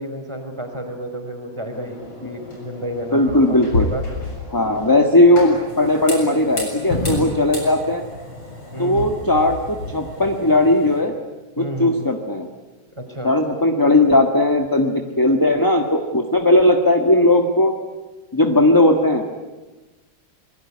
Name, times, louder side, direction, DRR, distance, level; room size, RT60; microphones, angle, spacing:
voice 1, 0.0-4.0 8.7-9.1 11.6-12.0 13.0-13.3, equal, 15° right, 5 dB, 4.6 m, -31 dB
sound 1, 1.7-11.0, left 2 dB, 75° left, 7.9 m, -30 dB
voice 2, 3.1-3.9 4.5-8.0 8.8-11.1 11.6-12.5 13.2-17.7 18.3-19.2, left 1 dB, 10° left, 4 dB, 1.3 m, -17 dB
27.5 x 21.5 x 9.7 m, 1.2 s
omnidirectional pair, 2.2 m